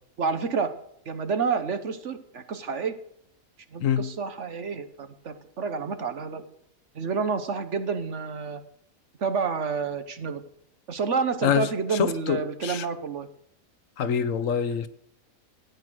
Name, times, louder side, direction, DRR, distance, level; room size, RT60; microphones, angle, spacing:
voice 1, 0.2-0.7 1.1-3.0 3.7-6.4 6.9-8.6 9.2-10.4 10.9-13.3, right 5 dB, 55° right, 1.3 m, -29 dB
voice 2, 3.8-4.1 11.4-12.9 14.0-14.9, left 8 dB, 65° left, 1.1 m, -26 dB
15.0 x 9.3 x 6.2 m
omnidirectional pair, 1.5 m